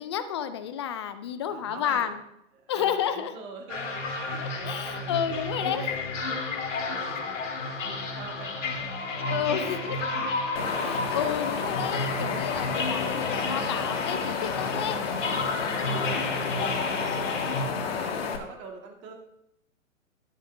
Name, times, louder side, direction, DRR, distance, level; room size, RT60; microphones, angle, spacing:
voice 1, 0.0-2.2 2.7-3.3 4.4-6.0 9.2-10.0 10.8-15.0, left 9 dB, 25° left, 11 dB, 0.3 m, -31 dB
voice 2, 1.5-2.1 2.5-6.4 6.8-11.1 16.4-19.1, right 4 dB, 30° right, 2 dB, 1.9 m, -45 dB
sound 1, 3.7-17.6, left 3 dB, 65° left, 1.8 m, -32 dB
Wind, 10.6-18.4, left 6 dB, 50° left, 1.3 m, -31 dB
11.5 x 9.0 x 2.6 m, 0.82 s
figure-of-eight pair, 115°, 40 cm